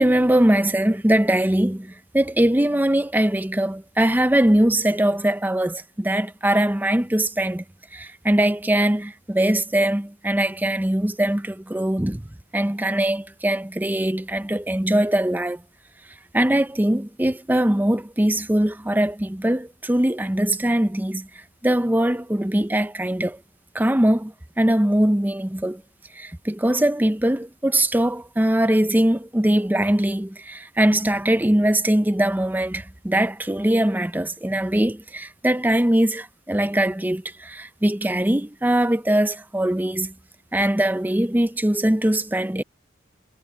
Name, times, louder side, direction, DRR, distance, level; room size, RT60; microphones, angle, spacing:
voice 1, 0.0-7.6 7.9-12.3 12.5-15.6 16.3-23.4 23.7-25.8 26.1-40.1 40.5-42.6, right 1 dB, 10° right, 0.6 m, -21 dB
head